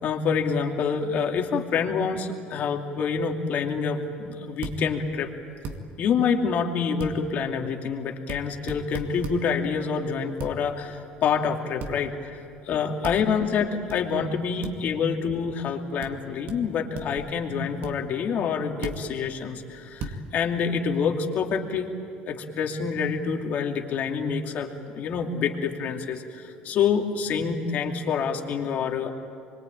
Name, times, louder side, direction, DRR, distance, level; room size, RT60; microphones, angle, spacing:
voice 1, 0.0-5.3 6.0-12.4 12.6-21.9 22.3-29.1, left 6 dB, 55° left, 2 dB, 2.6 m, -27 dB
sound 1, 4.6-4.8 5.6-5.8 7.0-7.1 8.3-8.4 8.7-9.4 10.4-10.5 11.8-12.0 13.0-13.2 13.9-14.0 14.6-14.7 16.0-16.1 16.5-16.6 16.9-17.3 17.8-17.9 18.8-19.0 20.0-20.2, right 4 dB, 60° right, 2.3 m, -34 dB
25.5 x 23.0 x 9.0 m, 2.3 s
cardioid pair, 110°, 3 cm